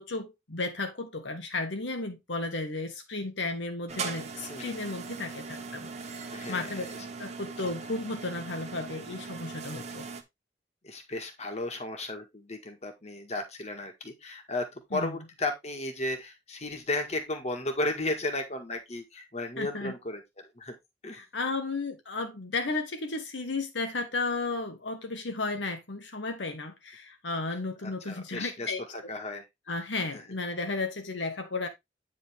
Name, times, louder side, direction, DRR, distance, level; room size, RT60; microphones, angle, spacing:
voice 1, 0.0-6.9 7.2-10.0 14.9-15.1 19.6-19.9 21.1-28.8 29.7-31.7, left 3 dB, 75° left, 1.3 m, -34 dB
sound 1, 3.9-10.2, right 4 dB, 35° right, 1.2 m, -40 dB
voice 2, 4.4-4.7 6.3-7.1 10.8-20.8 21.0-21.3 27.8-29.5 30.1-30.2, left 2 dB, 35° left, 1.9 m, -34 dB
9.3 x 5.1 x 3.6 m
head